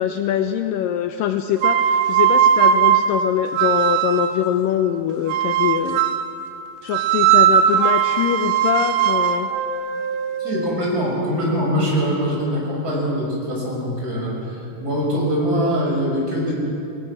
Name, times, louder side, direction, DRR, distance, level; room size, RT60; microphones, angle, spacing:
voice 1, 0.0-6.0 6.8-9.5, left 10 dB, 80° left, 7 dB, 2.2 m, -23 dB
sound 1, 1.6-4.4 5.3-6.3 6.9-10.9, right 9 dB, 85° right, 2.9 m, -18 dB
voice 2, 10.4-16.5, equal, 25° right, -4 dB, 6.4 m, -23 dB
25.5 x 21.0 x 6.1 m, 2.6 s
omnidirectional pair, 4.4 m